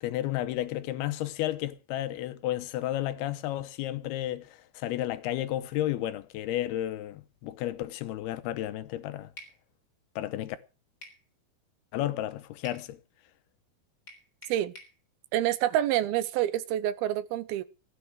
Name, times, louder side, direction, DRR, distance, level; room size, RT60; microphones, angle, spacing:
voice 1, 0.0-9.3 10.2-10.6 11.9-13.0, left 14 dB, 85° left, 2.9 m, -32 dB
sound 1, 9.4-9.6 11.0-11.2 12.6-12.9 14.1-15.0, left 1 dB, 20° left, 3.8 m, -48 dB
voice 2, 15.3-17.6, right 13 dB, 80° right, 2.7 m, -27 dB
15.5 x 9.6 x 6.3 m
omnidirectional pair, 4.4 m